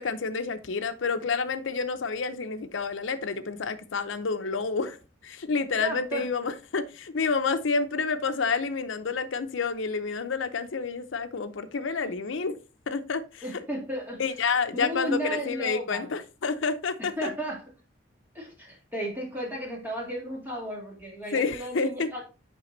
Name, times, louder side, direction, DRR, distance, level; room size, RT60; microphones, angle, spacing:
voice 1, 0.0-5.0 5.2-12.6 12.9-13.6 14.2-17.3 21.3-22.1, left 4 dB, 75° left, 0.6 m, -29 dB
voice 2, 5.8-6.2 13.4-14.2 14.7-16.1 17.0-17.6 18.3-22.2, right 1 dB, 10° right, 1.9 m, -34 dB
6.7 x 5.1 x 3.1 m
head